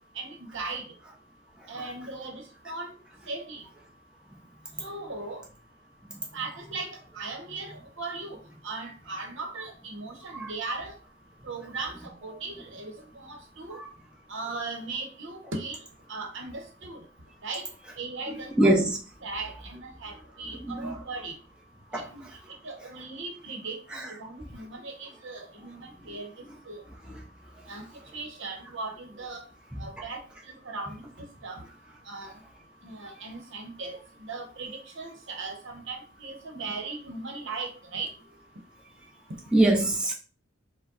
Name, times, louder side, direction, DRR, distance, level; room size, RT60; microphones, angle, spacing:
voice 1, 0.1-0.9 1.7-2.9 3.3-3.6 4.8-5.4 6.3-8.4 8.6-10.9 11.4-13.8 14.3-15.8 16.1-17.0 17.4-17.7 18.0-18.7 19.2-21.4 21.9-22.2 22.6-26.3 26.7-26.8 27.7-27.9 28.1-29.4 29.8-30.2 30.5-31.7 32.0-32.3 32.8-38.1, right 3 dB, 65° right, 1.0 m, -38 dB
voice 2, 18.6-19.0 20.6-21.0 21.9-22.1 23.9-24.1 26.1-26.2 27.1-27.2 29.7-29.8 39.5-40.1, right 1 dB, 5° right, 0.7 m, -24 dB
5.0 x 2.2 x 3.9 m
head